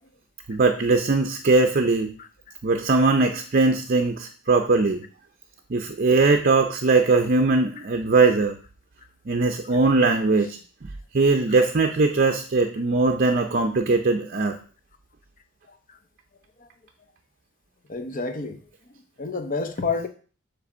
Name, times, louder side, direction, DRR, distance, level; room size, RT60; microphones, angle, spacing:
voice 1, 0.5-2.1 2.6-5.0 5.7-8.6 9.3-10.6 11.1-14.6, right 3 dB, 40° right, 6 dB, 0.5 m, -20 dB
voice 2, 17.9-18.6 19.2-20.1, left 4 dB, 40° left, 8 dB, 0.7 m, -29 dB
7.9 x 3.3 x 6.1 m, 0.39 s
head